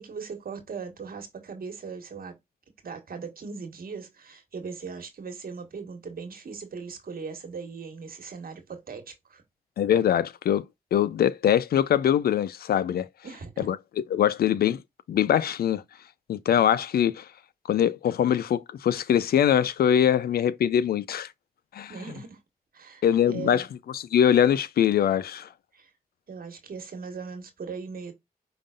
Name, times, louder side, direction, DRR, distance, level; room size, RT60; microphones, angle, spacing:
voice 1, 0.0-2.3 2.8-9.4 13.2-13.7 21.9-22.4 22.7-23.6 25.7-25.9 26.3-28.1, right 5 dB, 70° right, 1.4 m, -39 dB
voice 2, 9.8-10.6 10.9-13.1 13.6-14.8 15.1-15.8 16.3-17.2 17.7-21.3 21.7-21.9 23.0-23.7 23.9-25.5, left 9 dB, 85° left, 0.4 m, -23 dB
5.2 x 3.8 x 2.4 m
cardioid pair, 45°, 16 cm